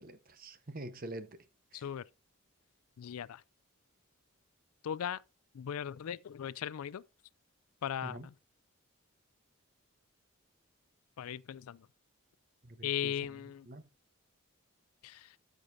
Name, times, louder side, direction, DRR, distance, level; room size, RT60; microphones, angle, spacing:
voice 1, 0.0-1.4 1.7-1.9 8.0-8.3 12.6-13.1 13.7-13.9, right 1 dB, 40° right, 0.9 m, -45 dB
voice 2, 1.7-2.0 3.0-3.4 4.8-5.2 5.5-7.0 7.8-8.3 11.2-11.9 12.8-13.7 15.0-15.3, left 9 dB, 85° left, 0.4 m, -38 dB
13.5 x 6.5 x 2.6 m
head